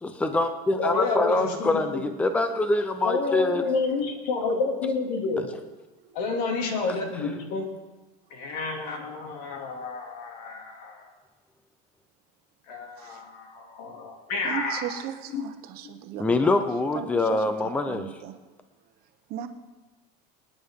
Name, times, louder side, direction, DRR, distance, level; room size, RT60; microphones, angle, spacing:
voice 1, 0.0-3.6 6.9-7.0 16.2-18.1, left 2 dB, 5° left, 8 dB, 0.6 m, -25 dB
voice 2, 0.8-2.0 3.0-5.5 6.1-7.7 8.3-11.1 12.7-15.0 15.3-15.4 15.8-15.9, left 3 dB, 80° left, 2 dB, 2.7 m, -29 dB
voice 3, 14.4-16.5 16.9-17.5 17.9-18.4 19.3-19.5, right 10 dB, 50° right, 8 dB, 1.1 m, -37 dB
25.0 x 9.7 x 3.7 m, 1.2 s
cardioid pair, 160°, 21 cm